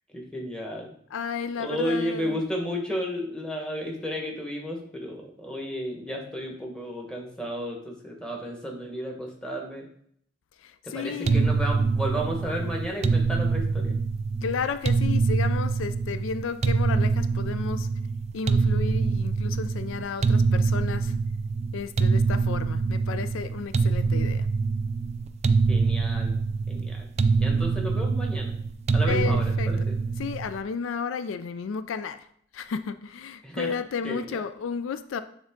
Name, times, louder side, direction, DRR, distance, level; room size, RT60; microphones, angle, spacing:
voice 1, 0.1-0.9 1.6-9.9 10.8-13.9 25.7-26.3 26.7-27.1 27.4-28.5 28.9-29.9 33.4-33.7 34.0-34.4, equal, 5° left, 1.3 m, -33 dB
voice 2, 1.1-2.4 10.6-11.6 14.4-17.9 18.3-21.1 21.7-24.5 29.0-29.7 30.2-32.3 32.5-35.2, left 6 dB, 85° left, 0.4 m, -33 dB
sound 1, 11.3-30.6, right 4 dB, 35° right, 0.3 m, -25 dB
8.7 x 3.6 x 3.7 m
head